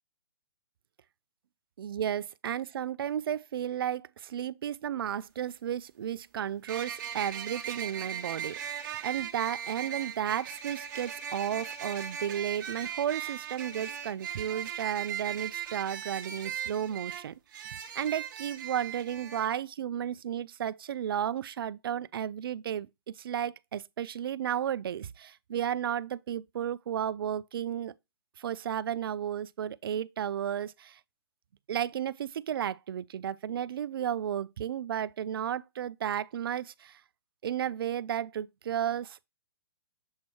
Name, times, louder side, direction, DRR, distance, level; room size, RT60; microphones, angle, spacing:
voice 1, 1.8-27.9 28.4-31.0 31.7-37.0 37.4-39.2, right 9 dB, 65° right, 0.4 m, -33 dB
sound 1, 5.0-5.1 6.7-19.5, right 8 dB, 50° right, 1.0 m, -38 dB
7.3 x 3.1 x 4.4 m
hypercardioid pair, 155°, 13 cm